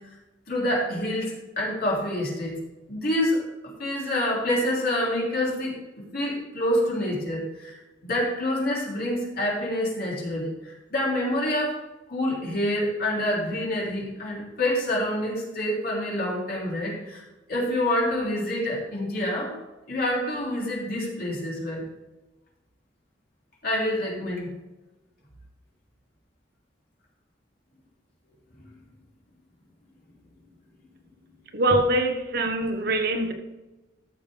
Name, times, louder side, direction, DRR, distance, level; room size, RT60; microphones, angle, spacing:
voice 1, 0.5-2.6 2.9-11.8 12.1-17.2 17.5-19.5 19.9-21.9 23.6-24.5, left 1 dB, 55° left, 3.2 m, -27 dB
voice 2, 31.5-33.3, right 1 dB, 55° right, 1.1 m, -23 dB
13.5 x 6.7 x 3.4 m
head